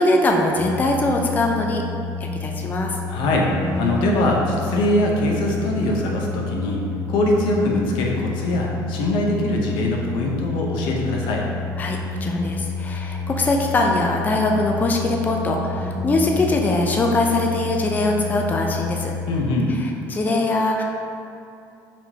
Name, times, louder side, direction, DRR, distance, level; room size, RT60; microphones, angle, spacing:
voice 1, 0.0-1.8 2.2-3.0 11.8-19.1 20.1-20.8, left 2 dB, 20° left, 1 dB, 0.4 m, -22 dB
sound 1, 0.6-19.4, left 3 dB, 5° right, 0.8 m, -29 dB
voice 2, 3.1-6.8 7.1-11.5 19.3-19.8, left 1 dB, 80° left, -1 dB, 0.7 m, -22 dB
4.8 x 3.6 x 2.8 m, 2.6 s
cardioid pair, 110°, 8 cm